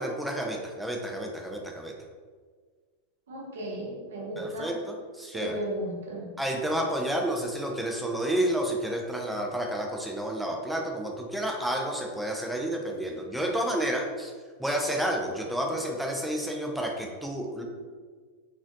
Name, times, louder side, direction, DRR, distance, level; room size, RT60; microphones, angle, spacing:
voice 1, 0.0-1.9 4.4-5.6 6.4-14.3 14.6-17.6, right 1 dB, 5° right, 0 dB, 0.6 m, -30 dB
voice 2, 3.3-4.7 5.3-6.3, equal, 60° right, -1 dB, 1.0 m, -35 dB
4.3 x 3.5 x 2.7 m, 1.5 s
figure-of-eight pair, 90°, 0 cm